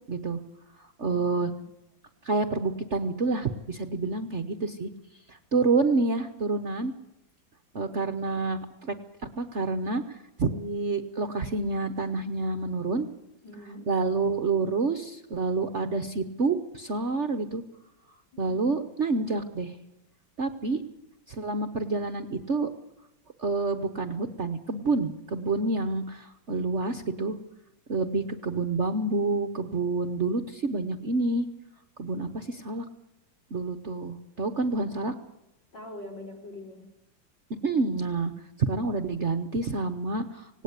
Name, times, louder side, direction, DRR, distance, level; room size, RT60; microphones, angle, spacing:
voice 1, 0.1-0.4 0.8-1.5 2.2-4.9 5.3-6.9 7.7-8.6 8.9-9.0 9.4-13.1 13.9-17.6 18.4-19.7 20.4-20.8 21.3-22.7 23.4-27.4 27.9-31.5 32.0-32.8 33.5-35.1 37.6-38.3 38.6-40.6, right 3 dB, 45° right, 9 dB, 1.1 m, -28 dB
voice 2, 1.1-1.6 13.4-13.9 18.3-18.7 35.7-36.8, left 1 dB, 65° left, 1 dB, 5.4 m, -43 dB
18.0 x 18.0 x 8.2 m, 0.89 s
omnidirectional pair, 2.1 m